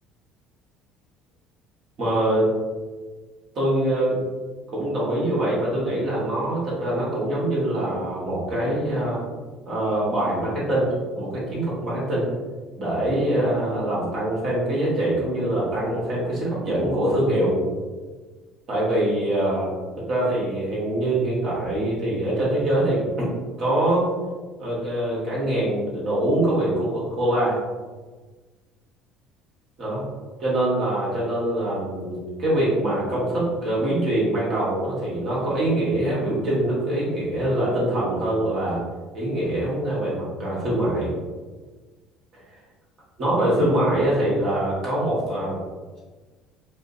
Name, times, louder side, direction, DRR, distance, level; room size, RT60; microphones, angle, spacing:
voice 1, 2.0-2.5 3.5-4.2 4.7-9.2 9.6-10.9 11.1-12.3 12.8-17.6 18.7-19.7 20.0-23.3 23.6-24.1 24.6-27.6 29.8-30.0 30.4-38.8 39.1-41.1 42.3-42.4 43.2-45.6, right 1 dB, 55° right, -6 dB, 1.3 m, -24 dB
4.7 x 2.0 x 2.6 m, 1.4 s
supercardioid pair, 100°, 0 cm